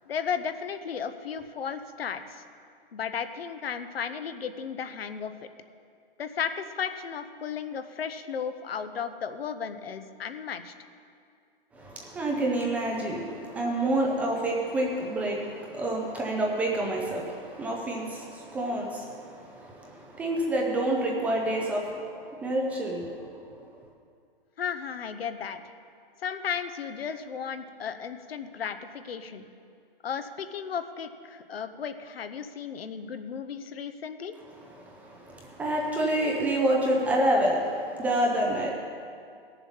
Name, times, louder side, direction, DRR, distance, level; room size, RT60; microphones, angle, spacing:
voice 1, 0.1-2.4 2.9-5.3 6.2-10.7 24.6-25.7 26.2-29.5 30.0-34.3, left 7 dB, 80° left, 10 dB, 0.9 m, -34 dB
voice 2, 11.7-23.8 34.5-38.7, right 1 dB, 5° right, -1 dB, 0.4 m, -28 dB
16.5 x 7.1 x 5.6 m, 2.3 s
hypercardioid pair, 150°, 29 cm